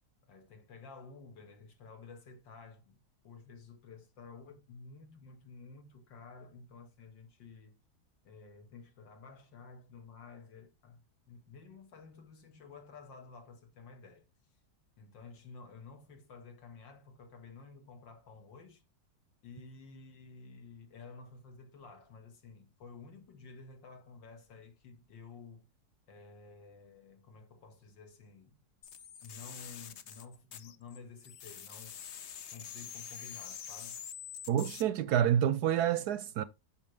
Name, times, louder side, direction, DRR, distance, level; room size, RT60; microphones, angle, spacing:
voice 1, 0.3-3.0 3.2-7.8 8.2-14.3 15.0-18.8 19.4-25.7 26.1-28.6 29.2-32.0 32.5-34.0, left 4 dB, 80° left, 2.5 m, -52 dB
sound 1, 28.8-31.0 31.2-34.8, left 8 dB, 55° left, 0.8 m, -46 dB
voice 2, 34.5-36.4, right 10 dB, 70° right, 1.0 m, -28 dB
8.5 x 6.3 x 3.4 m
omnidirectional pair, 2.0 m